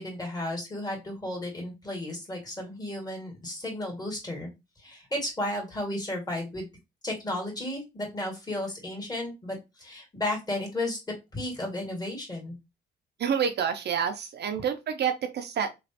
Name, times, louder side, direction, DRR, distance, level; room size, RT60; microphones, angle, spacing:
voice 1, 0.0-4.5 4.8-6.7 7.0-11.0 11.3-12.5, left 1 dB, 20° left, 1.8 m, -33 dB
voice 2, 13.2-15.7, right 7 dB, 55° right, 0.5 m, -28 dB
3.0 x 2.4 x 2.8 m
cardioid pair, 90°, 20 cm